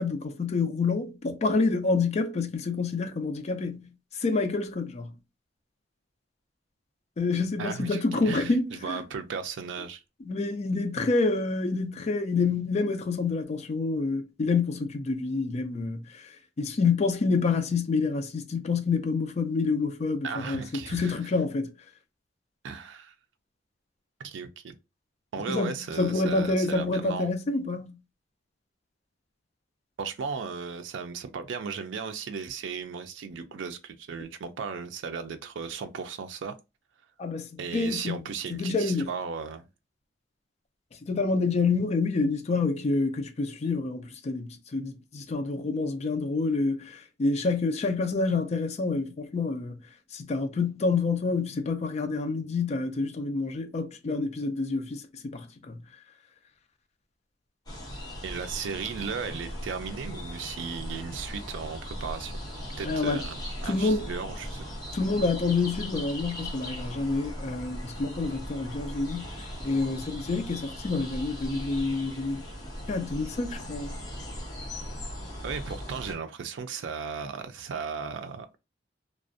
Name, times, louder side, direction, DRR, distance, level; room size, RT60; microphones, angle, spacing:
voice 1, 0.0-3.9 4.2-5.1 7.2-9.0 10.2-16.3 16.6-21.7 25.5-28.0 37.2-39.2 41.1-49.8 50.1-55.8 62.8-63.2 63.6-64.1 64.9-72.4 72.9-73.9, left 3 dB, 35° left, 0.4 m, -28 dB
voice 2, 7.6-10.0 20.2-21.2 22.6-23.1 24.2-24.7 25.3-27.3 30.0-36.5 37.6-39.6 58.2-62.3 62.8-64.7 75.4-78.6, right 6 dB, 80° right, 0.4 m, -36 dB
sound 1, 57.7-76.1, equal, 20° left, 0.9 m, -39 dB
2.4 x 2.0 x 2.5 m
head